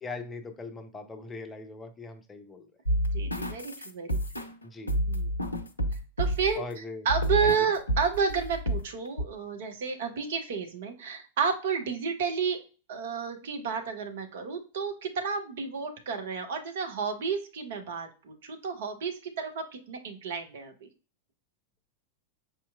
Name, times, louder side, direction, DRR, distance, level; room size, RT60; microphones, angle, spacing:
voice 1, 0.0-2.7 4.6-4.9 6.6-7.1 7.4-7.7, left 3 dB, 15° left, 6 dB, 0.6 m, -40 dB
sound 1, 2.8-6.6 7.1-7.6 7.9-8.8 9.2-9.3, equal, 80° left, 0.4 m, -29 dB
voice 2, 3.1-4.5 5.1-5.3 6.2-6.6 7.0-12.6 12.9-20.9, right 6 dB, 55° right, 5 dB, 0.7 m, -31 dB
4.4 x 2.8 x 2.2 m, 0.36 s
figure-of-eight pair, 90°, 0 cm